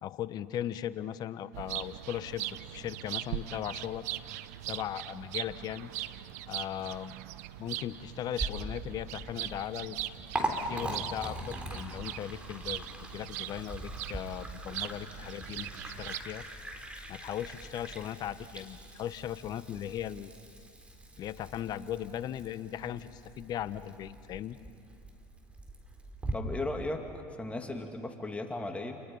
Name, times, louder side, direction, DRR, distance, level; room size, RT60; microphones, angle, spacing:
voice 1, 0.0-2.5 2.7-4.0 4.7-5.9 6.5-7.2 7.6-10.0 10.5-16.4 17.1-20.3 21.2-24.6, left 11 dB, 50° left, 14 dB, 1.1 m, -38 dB
sound 1, 1.5-16.2, right 14 dB, 80° right, 0.8 m, -41 dB
Liquid, 8.3-26.3, right 1 dB, 15° right, 4.1 m, -41 dB
voice 2, 26.3-29.0, left 2 dB, 15° left, 4 dB, 2.6 m, -36 dB
30.0 x 29.5 x 5.6 m, 2.4 s
hypercardioid pair, 80°, 8 cm